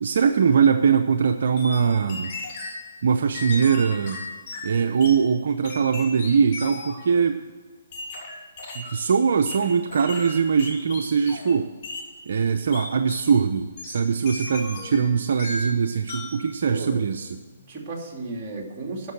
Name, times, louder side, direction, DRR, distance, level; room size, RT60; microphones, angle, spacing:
voice 1, 0.0-2.3 3.0-4.2 4.6-7.4 8.8-11.7 12.3-17.4, right 6 dB, 65° right, 7 dB, 0.6 m, -21 dB
sound 1, 1.6-2.8 3.3-5.2 5.6-7.0 7.9-9.0 9.4-11.6 11.8-12.1 12.7-13.3 13.8-15.1 15.4-15.8 16.1-16.4, left 2 dB, 45° left, 3.3 m, -36 dB
voice 2, 16.7-17.0 17.5-19.1, right 3 dB, 30° right, -1 dB, 2.7 m, -34 dB
12.5 x 6.0 x 7.7 m, 1.5 s
hypercardioid pair, 150°, 0 cm